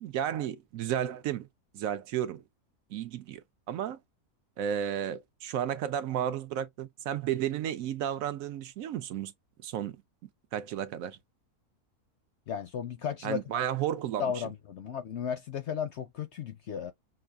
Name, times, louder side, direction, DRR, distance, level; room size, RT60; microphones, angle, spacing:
voice 1, 0.0-1.5 1.7-2.4 2.9-4.0 4.6-9.3 9.6-10.0 10.5-11.2 13.2-14.3, right 10 dB, 70° right, 0.9 m, -33 dB
voice 2, 12.5-13.4 14.2-16.9, left 8 dB, 65° left, 0.7 m, -34 dB
6.0 x 2.3 x 2.3 m
omnidirectional pair, 1.6 m